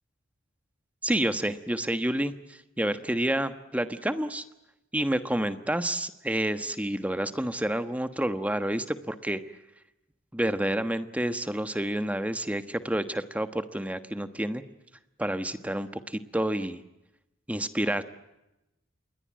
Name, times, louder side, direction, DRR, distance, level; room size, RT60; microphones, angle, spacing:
voice 1, 1.0-2.3 2.8-4.4 4.9-9.4 10.3-14.6 15.2-16.8 17.5-18.0, right 1 dB, 5° right, 10 dB, 1.2 m, -29 dB
28.0 x 22.0 x 7.5 m, 0.92 s
head